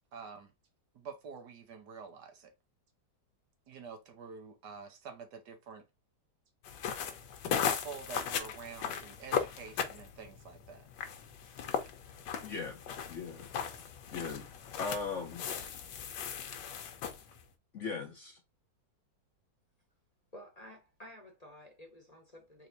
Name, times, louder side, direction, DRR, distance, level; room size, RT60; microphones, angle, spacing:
voice 1, 0.1-0.5 0.9-2.5 3.7-5.9 7.5-10.9, right 5 dB, 70° right, 1.4 m, -47 dB
sound 1, 6.6-17.4, left 7 dB, 80° left, 1.4 m, -37 dB
voice 2, 12.4-13.5 14.1-14.5 14.8-15.5 17.7-18.4, left 5 dB, 55° left, 1.0 m, -39 dB
voice 3, 20.3-22.7, equal, 25° left, 0.9 m, -52 dB
4.0 x 3.3 x 2.7 m
omnidirectional pair, 2.0 m